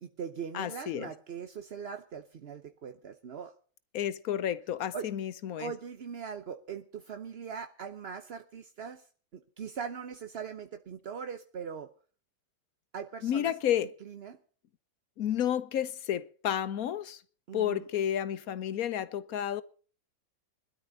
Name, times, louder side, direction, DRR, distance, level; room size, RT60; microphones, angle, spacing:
voice 1, 0.0-3.5 4.9-5.1 5.6-9.1 9.3-11.9 12.9-13.5 14.0-14.4 17.5-17.8, right 7 dB, 50° right, 0.8 m, -41 dB
voice 2, 0.5-1.1 3.9-5.7 13.2-13.9 15.2-17.2 17.5-19.6, left 10 dB, 60° left, 1.1 m, -31 dB
20.5 x 12.5 x 4.0 m
omnidirectional pair, 2.0 m